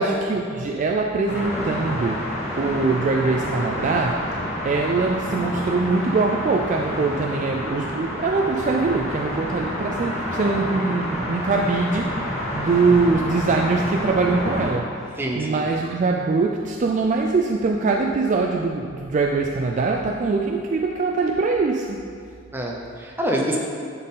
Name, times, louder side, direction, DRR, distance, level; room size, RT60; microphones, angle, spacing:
voice 1, 0.0-22.0, right 3 dB, 35° right, 1 dB, 0.3 m, -23 dB
sound 1, 1.3-14.7, equal, 30° left, 1.3 m, -29 dB
voice 2, 15.2-15.6 22.5-23.6, right 1 dB, 10° right, -1 dB, 0.7 m, -26 dB
10.5 x 4.1 x 3.7 m, 2.3 s
head